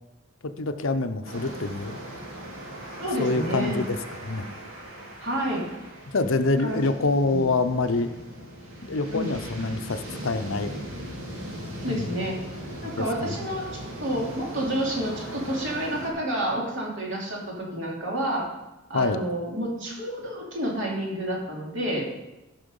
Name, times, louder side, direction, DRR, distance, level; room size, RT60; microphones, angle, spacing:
voice 1, 0.6-2.0 3.2-3.9 4.2-4.5 6.1-8.1 8.9-10.8 11.8-12.1 12.8-13.0 18.9-19.2, left 3 dB, 65° left, 9 dB, 0.7 m, -26 dB
sound 1, 1.3-16.1, right 1 dB, 75° right, 2.8 m, -39 dB
voice 2, 3.0-3.8 5.2-5.7 6.6-6.8 7.2-7.5 9.1-9.3 11.8-12.4 12.8-18.5 18.9-22.0, right 1 dB, 55° right, -2 dB, 2.8 m, -29 dB
14.0 x 5.8 x 5.4 m, 1.0 s
head